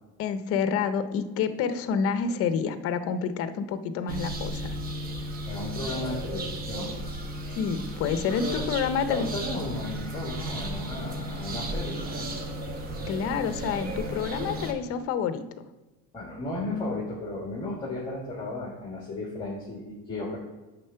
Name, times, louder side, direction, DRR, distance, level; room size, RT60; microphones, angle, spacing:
voice 1, 0.2-4.8 7.5-9.3 13.1-15.7, left 6 dB, 50° left, 10 dB, 0.7 m, -28 dB
sound 1, 4.1-14.7, right 1 dB, 30° right, 1.0 m, -34 dB
voice 2, 5.5-7.0 8.4-8.6 9.1-12.3 16.1-20.4, left 2 dB, 15° left, -5 dB, 1.9 m, -34 dB
10.0 x 3.7 x 5.7 m, 1.1 s
cardioid pair, 160°, 30 cm